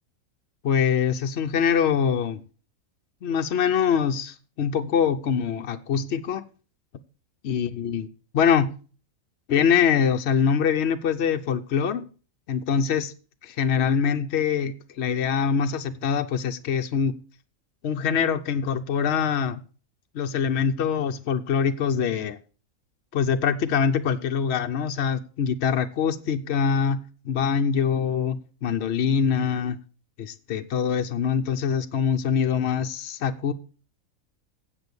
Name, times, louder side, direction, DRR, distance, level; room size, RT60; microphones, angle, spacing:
voice 1, 0.6-2.4 3.2-6.4 7.4-8.1 8.3-8.7 9.5-12.0 12.5-13.1 13.4-17.1 17.8-19.6 20.1-22.4 23.1-27.0 27.2-29.8 30.2-33.5, left 7 dB, 60° left, 0.8 m, -24 dB
8.2 x 8.0 x 6.8 m
omnidirectional pair, 1.5 m